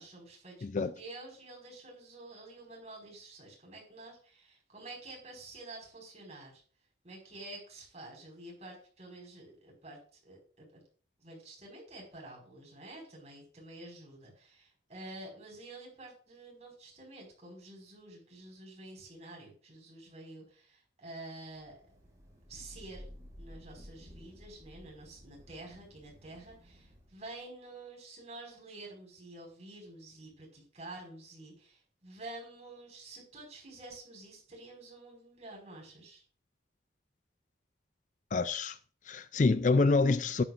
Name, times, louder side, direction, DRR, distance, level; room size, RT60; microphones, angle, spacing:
voice 1, 0.0-6.6 7.0-10.8 11.2-21.9 22.5-23.1 23.4-36.2, right 2 dB, 40° right, 5.4 m, -49 dB
voice 2, 0.6-0.9 38.3-38.8 39.1-40.4, left 3 dB, 45° left, 0.4 m, -26 dB
Thunder / Rain, 21.6-27.4, equal, 20° right, 5.7 m, -53 dB
13.0 x 11.0 x 2.6 m
head